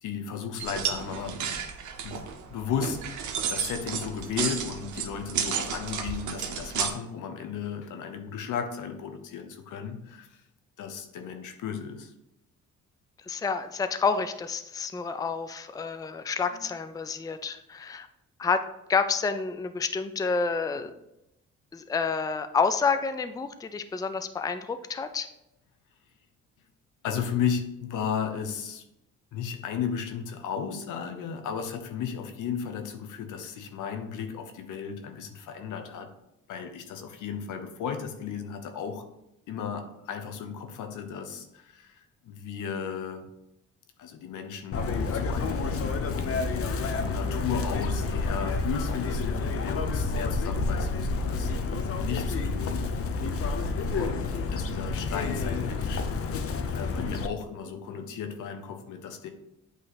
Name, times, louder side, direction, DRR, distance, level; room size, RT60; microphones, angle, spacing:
voice 1, 0.0-1.6 2.0-3.0 3.5-10.4 10.8-12.1 16.5-16.6 27.0-28.8 29.3-36.1 36.5-39.1 39.5-43.3 44.0-45.9 46.5-52.9 53.9-56.4 56.7-59.3, left 7 dB, 80° left, 7 dB, 1.0 m, -35 dB
sound 1, 0.6-6.9, right 7 dB, 75° right, 0.9 m, -32 dB
voice 2, 13.2-18.1 18.4-18.6 18.9-20.9 21.7-25.3, left 5 dB, 10° left, 10 dB, 0.4 m, -29 dB
Chirp tweet, 44.7-57.3, left 3 dB, 50° left, 0.7 m, -29 dB
8.3 x 3.2 x 4.0 m, 0.87 s
cardioid pair, 90°, 30 cm